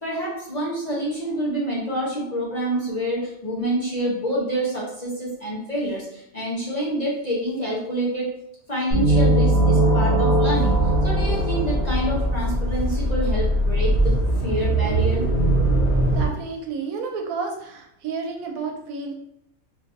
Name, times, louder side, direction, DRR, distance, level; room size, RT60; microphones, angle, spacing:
voice 1, 0.0-8.3 8.7-15.2, right 1 dB, 40° left, -6 dB, 0.7 m, -27 dB
sound 1, 8.9-12.7, right 1 dB, 40° right, 0.8 m, -20 dB
sound 2, 10.5-16.3, right 1 dB, 75° left, 0.3 m, -22 dB
voice 2, 16.1-19.1, right 4 dB, 85° right, 3 dB, 1.1 m, -31 dB
3.3 x 2.5 x 2.6 m, 0.76 s
omnidirectional pair, 1.5 m